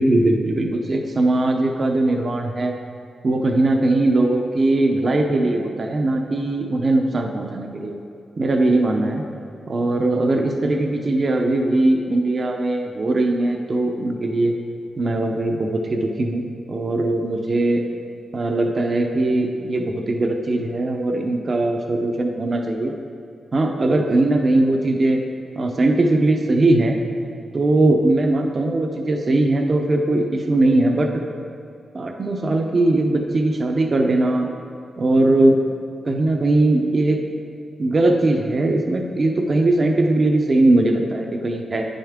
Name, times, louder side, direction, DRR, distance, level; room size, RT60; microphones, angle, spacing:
voice 1, 0.0-2.7 3.2-7.9 8.4-9.2 9.7-14.5 15.0-17.8 18.3-22.9 23.5-25.2 25.5-27.0 27.5-31.1 31.9-34.5 35.0-35.6 36.0-37.2 37.8-41.9, right 2 dB, 35° right, 3 dB, 0.6 m, -20 dB
9.6 x 9.1 x 3.6 m, 2.6 s
wide cardioid pair, 160°, 0 cm